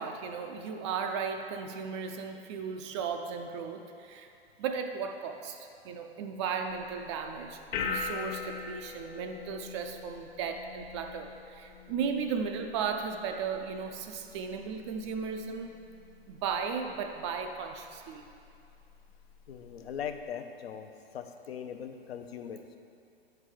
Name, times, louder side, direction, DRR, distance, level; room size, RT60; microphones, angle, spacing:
voice 1, 0.0-4.3 4.6-15.8 16.3-18.2, right 6 dB, 30° right, 5 dB, 0.4 m, -36 dB
sound 1, 6.7-20.2, left 5 dB, 35° left, 0.7 m, -43 dB
voice 2, 19.5-20.9 21.1-22.8, left 8 dB, 70° left, 7 dB, 0.6 m, -40 dB
7.8 x 4.7 x 4.8 m, 2.5 s
hypercardioid pair, 115°, 32 cm